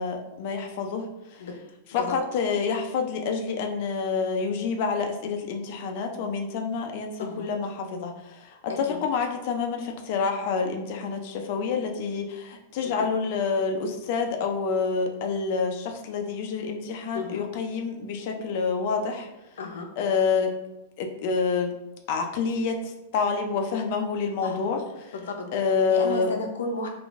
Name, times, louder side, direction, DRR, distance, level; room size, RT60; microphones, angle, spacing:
voice 1, 0.0-1.5 1.9-19.3 20.0-20.5 21.0-21.7 22.1-25.1 25.5-26.3, left 5 dB, 35° left, 4 dB, 0.4 m, -28 dB
voice 2, 7.2-7.5 8.7-9.0 12.8-13.1 17.1-17.5 19.6-19.9 24.4-24.6 25.1-25.5 25.9-26.9, left 3 dB, 85° left, 4 dB, 0.6 m, -33 dB
3.7 x 2.5 x 2.4 m, 0.94 s
supercardioid pair, 180°, 0 cm